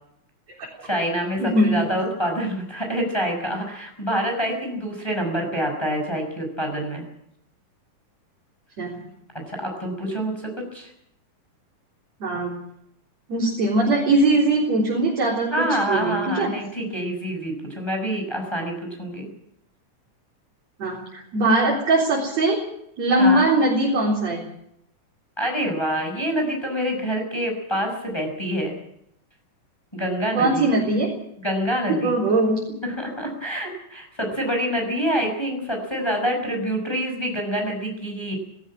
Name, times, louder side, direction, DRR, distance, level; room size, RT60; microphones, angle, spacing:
voice 1, 0.8-7.0 9.5-10.9 15.5-18.7 19.0-19.3 23.2-23.5 25.4-28.8 29.9-30.7 31.4-32.2 32.8-38.4, equal, 5° left, 2 dB, 6.0 m, -26 dB
voice 2, 1.4-1.9 8.8-9.0 12.2-12.5 13.3-16.5 20.8-22.6 23.0-24.4 30.3-31.1 32.0-32.6, right 2 dB, 55° right, -3 dB, 5.1 m, -21 dB
19.0 x 17.5 x 8.8 m, 0.75 s
omnidirectional pair, 3.7 m